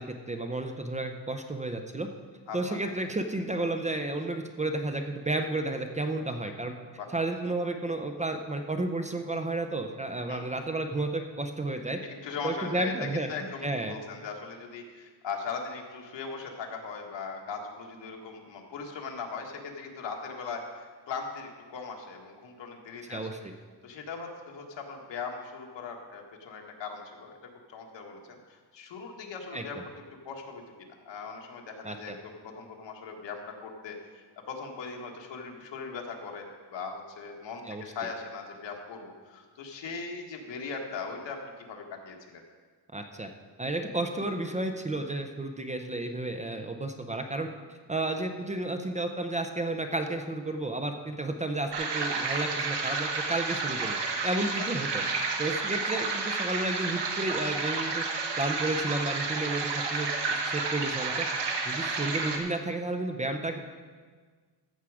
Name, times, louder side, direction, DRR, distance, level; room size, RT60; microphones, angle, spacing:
voice 1, 0.0-2.1 2.5-6.7 7.1-12.0 12.4-13.9 23.1-23.5 29.5-29.6 31.8-32.0 37.7-37.8 42.9-43.3 43.6-47.5 47.9-54.0 54.2-55.0 55.4-58.0 58.4-63.6, right 2 dB, 15° right, 5 dB, 0.5 m, -32 dB
voice 2, 2.5-2.8 7.0-7.1 10.3-10.4 12.0-23.3 23.8-27.3 27.7-29.8 30.2-30.6 31.0-42.4 54.6-54.7 61.8-61.9, left 5 dB, 80° left, 2 dB, 1.7 m, -39 dB
sound 1, 51.7-62.4, right 4 dB, 70° right, 1.4 m, -31 dB
14.5 x 7.3 x 4.8 m, 1.5 s
wide cardioid pair, 175°, 43 cm